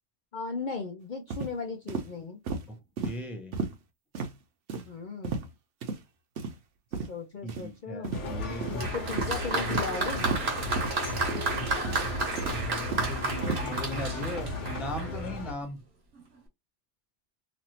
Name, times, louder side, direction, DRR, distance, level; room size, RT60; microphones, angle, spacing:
voice 1, 0.3-2.4 4.9-5.5 7.0-8.2 8.7-10.3, left 4 dB, 55° left, 0.6 m, -37 dB
sound 1, 1.3-1.5 1.9-2.1 2.5-2.6 3.0-3.1 3.5-3.7 4.1-4.3 4.7-4.9 5.2-5.5 5.8-6.0 6.4-6.5 6.9-7.1 7.5-7.6 8.0-8.2 8.6-8.8 9.2-9.3 9.7-9.9 10.2-10.4 10.8-10.9 11.3-11.5 11.8-12.1 12.4-13.1 13.4-13.6, right 4 dB, 80° right, 1.0 m, -33 dB
voice 2, 2.7-3.5 7.4-8.9 9.6-9.7 12.5-15.8, left 1 dB, ahead, 0.5 m, -38 dB
sound 2, 8.1-15.5, left 2 dB, 80° left, 1.2 m, -35 dB
Applause, 8.8-15.3 16.2-16.3, right 3 dB, 60° right, 1.3 m, -32 dB
3.1 x 2.5 x 2.7 m
omnidirectional pair, 1.2 m